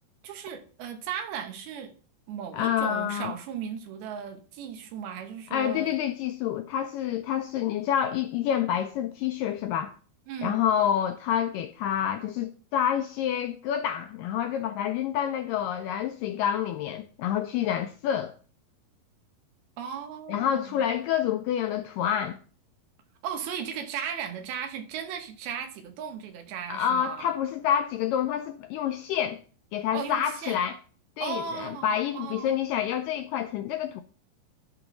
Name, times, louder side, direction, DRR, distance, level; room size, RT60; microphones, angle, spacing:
voice 1, 0.2-1.9 2.3-6.0 10.3-10.7 19.8-20.8 23.2-27.3 29.9-30.6 31.2-32.6, right 8 dB, 80° right, 3.0 m, -36 dB
voice 2, 2.5-3.3 5.5-9.9 10.4-18.3 20.3-22.4 26.7-29.4 29.7-30.8 31.2-34.0, left 9 dB, 85° left, 2.0 m, -28 dB
11.5 x 3.9 x 6.0 m
omnidirectional pair, 4.4 m